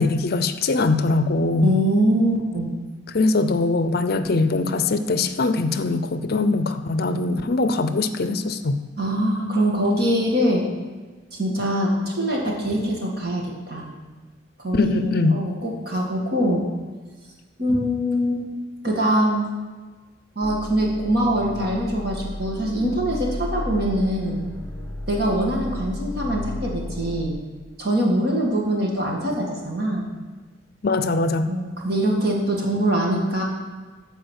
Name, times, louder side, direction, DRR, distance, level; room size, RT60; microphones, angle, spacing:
voice 1, 0.0-1.8 3.1-8.8 14.7-15.4 30.8-31.5, left 3 dB, 50° left, 10 dB, 0.5 m, -21 dB
voice 2, 1.6-2.7 9.0-10.6 11.3-13.8 14.6-14.9 15.3-16.6 17.6-18.5 18.8-19.5 20.4-24.4 25.1-27.4 27.8-30.1 31.5-33.4, right 1 dB, 55° right, -1 dB, 2.2 m, -23 dB
sound 1, 20.4-27.3, left 1 dB, 15° left, 1.0 m, -33 dB
14.0 x 4.8 x 6.5 m, 1.4 s
head